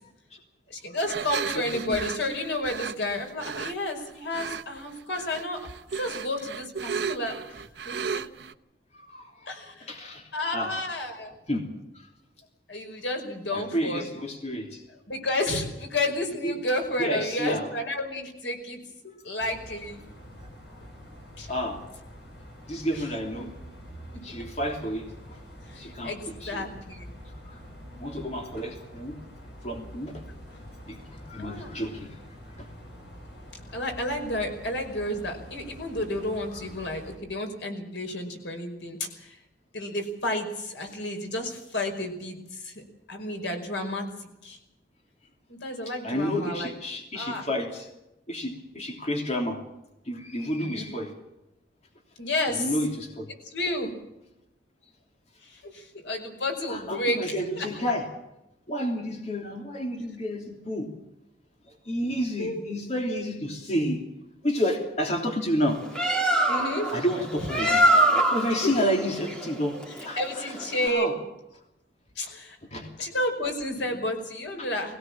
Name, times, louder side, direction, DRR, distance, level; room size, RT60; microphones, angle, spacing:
voice 1, 0.7-5.6 6.0-8.2 9.5-9.9 10.3-11.3 12.7-14.1 15.1-20.0 21.4-21.5 22.9-23.0 25.7-27.1 31.4-31.7 33.7-39.4 39.7-42.8 43.1-44.6 45.5-46.7 47.1-47.4 50.6-50.9 52.2-52.7 53.5-53.9 55.4-57.7 62.4-62.6 66.5-66.9 67.4-67.5 68.6-68.7 70.2-71.2 72.2-72.6 73.0-75.0, left 1 dB, 90° left, 4 dB, 5.3 m, -31 dB
sound 1, 1.1-3.7 4.3-4.8 5.1-8.5, right 6 dB, 70° right, 0.9 m, -34 dB
voice 2, 1.5-2.0 8.9-9.5 9.8-10.8 11.5-11.7 11.9-12.1 13.5-14.8 16.1-16.2 16.4-16.5 17.0-17.7 21.5-21.8 22.7-23.5 24.2-25.4 25.7-26.6 27.5-27.6 28.0-29.2 29.6-30.2 30.9-32.2 32.6-32.7 46.0-47.9 48.3-49.6 50.0-51.1 52.5-53.3 56.7-58.1 58.7-60.9 61.7-64.0 64.4-65.8 66.9-67.8 68.3-70.5 70.8-71.2 72.7-73.1 73.4-73.5 74.6-74.7, equal, 40° left, 2 dB, 3.1 m, -30 dB
sound 2, 19.4-37.2, equal, 70° left, 7.1 m, -46 dB
Bird, 65.7-70.9, right 1 dB, 5° left, 2.8 m, -24 dB
21.5 x 17.5 x 7.5 m, 0.90 s
head